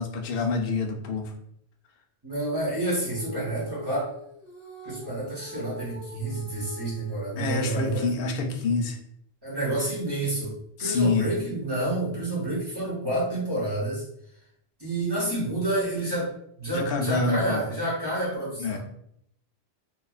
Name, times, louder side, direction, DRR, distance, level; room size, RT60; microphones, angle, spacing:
voice 1, 0.0-1.3 7.4-9.0 10.8-11.3 16.7-17.6 18.6-18.8, left 3 dB, 65° left, 3 dB, 0.7 m, -27 dB
voice 2, 2.2-4.0 4.8-8.0 9.4-14.0 14.8-16.3 16.6-18.8, right 1 dB, 25° right, -6 dB, 0.9 m, -29 dB
Female singing, 2.5-9.0, left 2 dB, 65° right, 1.4 m, -44 dB
2.9 x 2.3 x 2.3 m, 0.71 s
omnidirectional pair, 1.1 m